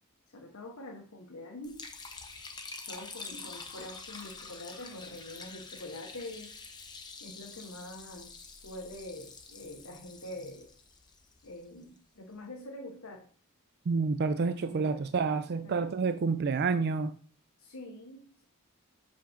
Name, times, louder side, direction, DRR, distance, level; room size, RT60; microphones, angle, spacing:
voice 1, 0.3-1.9 2.9-6.5 7.2-8.4 8.6-10.7 11.4-13.3 14.7-15.0 15.6-15.8 17.6-18.4, left 1 dB, 70° left, 1.1 m, -45 dB
Liquid, 1.6-11.8, left 4 dB, 20° left, 0.9 m, -47 dB
voice 2, 13.9-17.1, right 4 dB, 50° right, 0.4 m, -29 dB
6.3 x 5.7 x 5.0 m
head